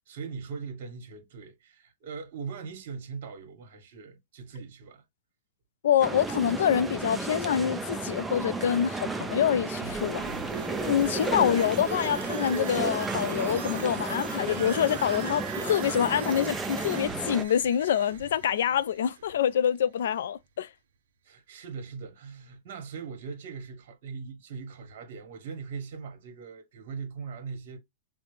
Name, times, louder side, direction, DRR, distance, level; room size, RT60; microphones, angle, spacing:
voice 1, 0.0-5.0 21.2-27.8, right 5 dB, 55° right, 1.3 m, -40 dB
voice 2, 5.8-10.3 10.9-20.7, left 9 dB, 75° left, 0.3 m, -26 dB
sound 1, 6.0-17.4, right 3 dB, 5° right, 0.4 m, -33 dB
sound 2, 9.8-19.5 19.9-20.0, right 8 dB, 75° right, 0.6 m, -41 dB
5.7 x 2.0 x 3.1 m
supercardioid pair, 160°, 0 cm